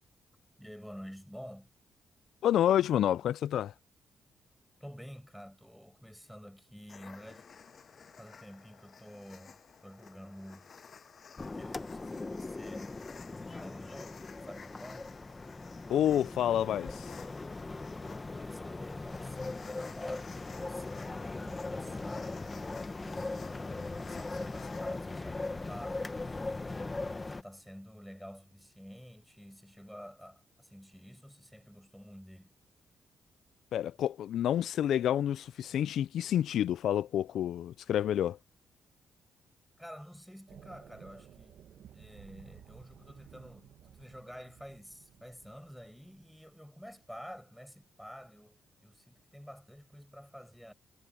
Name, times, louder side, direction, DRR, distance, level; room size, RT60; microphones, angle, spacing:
voice 1, 0.6-1.7 4.8-7.5 8.2-10.7 11.5-13.1 13.4-15.2 18.0-23.7 24.0-26.1 27.3-32.5 39.8-41.6 41.9-50.7, equal, ahead, 7.1 m, -49 dB
voice 2, 2.4-3.7 15.9-17.2 33.7-38.4, left 11 dB, 80° left, 0.3 m, -29 dB
sound 1, 6.9-26.2, left 6 dB, 50° left, 7.2 m, -54 dB
sound 2, 11.4-27.4, left 3 dB, 25° left, 1.3 m, -39 dB
sound 3, 40.5-46.6, right 10 dB, 75° right, 1.1 m, -56 dB
cardioid pair, 100°, 0 cm